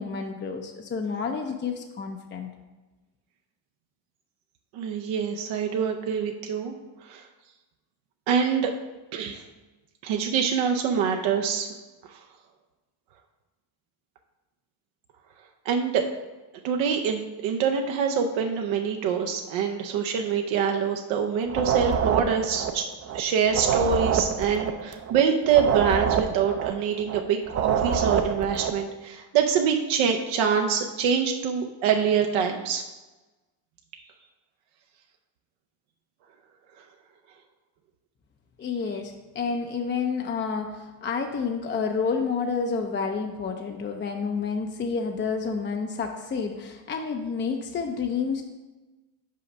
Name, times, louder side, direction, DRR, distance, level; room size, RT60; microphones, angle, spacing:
voice 1, 0.0-2.5 38.6-48.4, left 5 dB, 25° left, 3 dB, 0.4 m, -29 dB
voice 2, 4.7-6.7 7.0-7.3 8.3-8.7 9.1-9.4 10.0-11.7 12.1-12.2 15.6-16.1 16.6-22.9 23.1-32.8, right 7 dB, 75° right, 3 dB, 0.7 m, -25 dB
sound 1, 21.5-23.2 23.5-27.2 27.5-28.8, right 7 dB, 35° right, 0.5 m, -26 dB
5.6 x 4.9 x 5.2 m, 1.2 s
cardioid pair, 115°, 47 cm